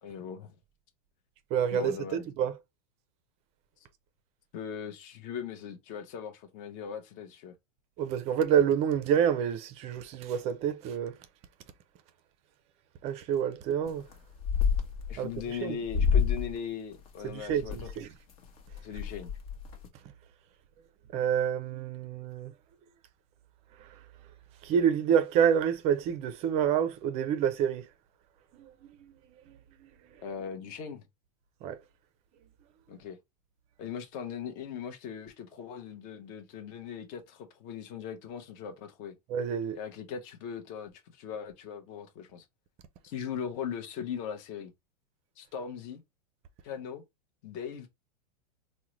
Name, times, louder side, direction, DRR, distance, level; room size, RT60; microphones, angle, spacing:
voice 1, 0.0-0.5 1.7-2.3 4.5-7.5 15.1-18.0 18.8-19.3 30.2-31.0 32.9-33.2 33.8-39.1 39.7-42.4 43.0-44.7 45.4-46.0 46.6-47.0 47.4-47.9, left 7 dB, 40° left, 0.7 m, -39 dB
voice 2, 1.5-2.5 8.0-11.2 13.0-14.1 15.2-15.3 15.6-15.8 17.2-18.1 21.1-22.5 24.6-27.9 28.6-29.1 29.5-29.9 31.6-31.8 39.3-39.8, right 8 dB, 35° right, 0.4 m, -28 dB
sound 1, 13.9-14.1 14.4-15.5 15.9-16.5 16.9-17.9 18.4-18.5 18.7-19.9, left 6 dB, 65° left, 0.9 m, -28 dB
3.7 x 2.1 x 3.0 m
supercardioid pair, 135°, 20 cm